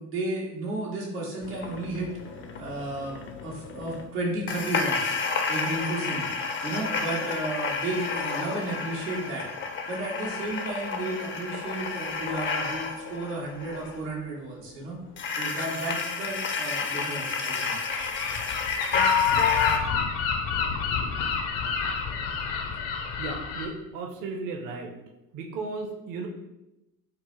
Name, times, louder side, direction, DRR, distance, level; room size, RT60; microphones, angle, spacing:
voice 1, 0.0-2.1 2.6-6.3 6.6-9.5 9.9-15.0 15.4-17.8, right 2 dB, 90° right, -4 dB, 0.9 m, -33 dB
sound 1, 1.4-4.0 4.5-14.0 15.2-19.8, left 5 dB, 30° left, 0.4 m, -30 dB
Gull seagull, 17.9-23.7, left 5 dB, 65° left, 0.7 m, -29 dB
voice 2, 23.2-24.9 25.3-26.3, right 3 dB, 45° right, 3 dB, 0.6 m, -35 dB
3.7 x 2.0 x 3.0 m, 0.92 s
hypercardioid pair, 60°, 45 cm